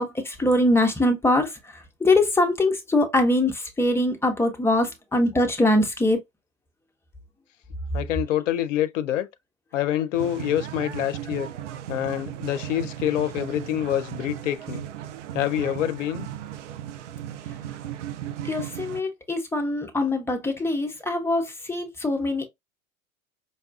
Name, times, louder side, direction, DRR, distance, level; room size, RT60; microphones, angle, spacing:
voice 1, 0.0-6.2 18.4-22.5, left 1 dB, 5° left, 0.6 m, -23 dB
voice 2, 7.9-9.3 9.7-11.5 11.9-14.8 15.3-16.3, left 12 dB, 60° left, 0.6 m, -26 dB
sound 1, 10.1-19.0, right 11 dB, 60° right, 0.5 m, -36 dB
5.3 x 2.3 x 2.4 m
figure-of-eight pair, 85°, 41 cm